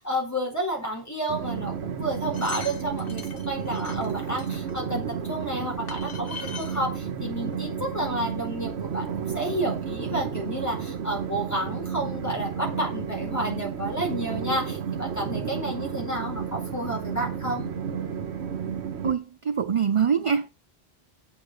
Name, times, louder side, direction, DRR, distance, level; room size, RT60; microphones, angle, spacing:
voice 1, 0.0-17.7, right 1 dB, 15° left, 4.6 m, -31 dB
Train, 1.3-19.1, right 7 dB, 85° right, 1.2 m, -32 dB
sound 1, 2.1-4.7 5.5-5.6 5.9-6.8 7.5-7.6 7.8-7.9, left 5 dB, 60° left, 1.4 m, -41 dB
voice 2, 19.0-20.5, right 7 dB, 40° right, 0.5 m, -24 dB
8.0 x 7.2 x 6.4 m
omnidirectional pair, 1.1 m